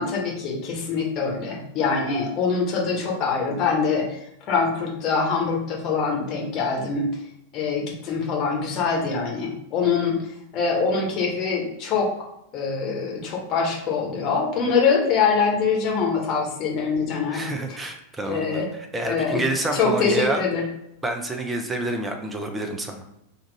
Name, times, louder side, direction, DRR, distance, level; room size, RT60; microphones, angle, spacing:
voice 1, 0.0-4.2 4.5-7.1 7.5-10.2 10.5-12.1 12.5-17.4 18.2-18.7 19.0-19.4 19.7-20.7, left 5 dB, 35° left, -1 dB, 1.1 m, -24 dB
voice 2, 17.3-20.4 21.0-23.1, right 2 dB, 10° right, 4 dB, 0.6 m, -28 dB
3.7 x 2.4 x 4.0 m, 0.81 s
figure-of-eight pair, 90°, 0 cm